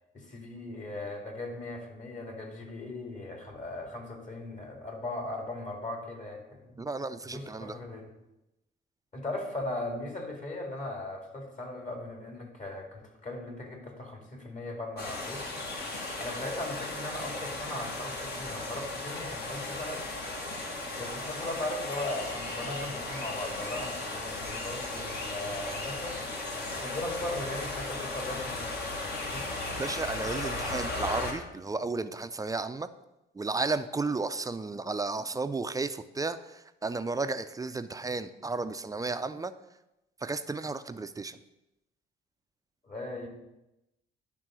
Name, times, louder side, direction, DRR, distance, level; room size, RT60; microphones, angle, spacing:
voice 1, 0.1-6.8 7.3-8.0 9.1-15.4 16.2-20.1 21.0-26.2 26.7-29.5 42.8-43.3, left 1 dB, 40° left, 1 dB, 2.4 m, -38 dB
voice 2, 6.8-7.8 29.8-32.9 33.3-39.5 40.2-41.4, right 3 dB, 15° right, 11 dB, 0.5 m, -33 dB
sound 1, 15.0-31.3, left 2 dB, 55° left, 1.9 m, -36 dB
10.5 x 3.7 x 6.2 m, 0.94 s
cardioid pair, 90°, 20 cm